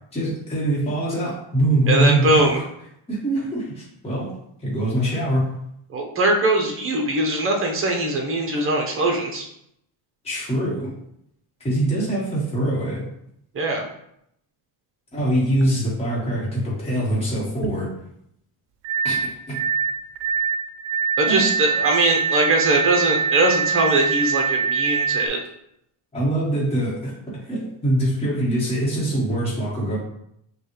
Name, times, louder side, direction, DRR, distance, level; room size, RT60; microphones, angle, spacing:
voice 1, 0.1-2.6 3.1-4.3 4.6-5.5 8.5-8.6 10.2-10.9 11.6-13.0 15.1-17.9 19.0-19.6 21.3-21.5 26.1-27.1 27.4-30.0, right 1 dB, 15° left, -7 dB, 1.4 m, -23 dB
voice 2, 1.9-2.6 5.9-9.5 13.5-13.8 21.2-25.4, right 2 dB, 30° right, 2 dB, 0.8 m, -21 dB
sound 1, 18.8-25.3, right 6 dB, 75° right, 0.6 m, -23 dB
5.3 x 2.4 x 3.1 m, 0.75 s
cardioid pair, 140°, 45 cm